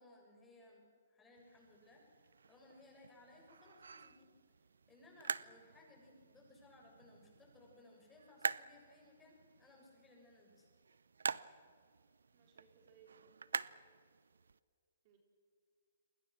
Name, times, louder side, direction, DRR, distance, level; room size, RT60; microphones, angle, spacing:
voice 1, 0.0-4.6 4.9-10.7, left 2 dB, 10° left, -1 dB, 7.1 m, -63 dB
sound 1, 1.4-14.6, right 5 dB, 80° right, 0.6 m, -47 dB
voice 2, 12.3-13.9 15.0-15.2, right 7 dB, 40° right, 1 dB, 4.3 m, -67 dB
29.0 x 22.0 x 6.4 m, 2.2 s
hypercardioid pair, 140°, 0 cm